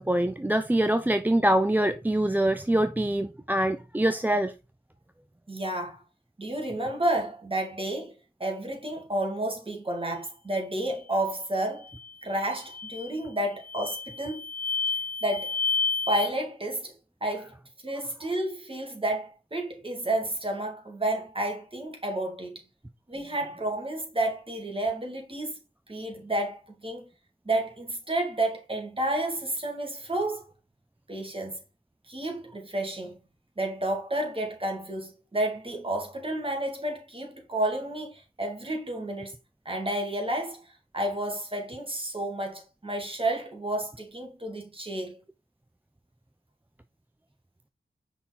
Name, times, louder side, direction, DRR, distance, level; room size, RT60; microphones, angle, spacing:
voice 1, 0.0-4.5, right 1 dB, 10° right, 0.5 m, -24 dB
voice 2, 5.5-6.0 6.4-8.1 8.4-11.9 12.2-14.4 15.2-15.6 16.1-16.9 17.2-17.5 17.8-22.6 23.1-25.6 25.9-27.1 27.4-30.5 31.1-31.6 32.1-33.2 33.6-39.3 39.6-45.2, right 1 dB, 30° right, 2.6 m, -31 dB
sound 1, 11.8-12.1 12.6-13.1 13.6-16.3, left 4 dB, 50° left, 1.6 m, -30 dB
5.4 x 4.5 x 4.2 m
cardioid pair, 40°, 18 cm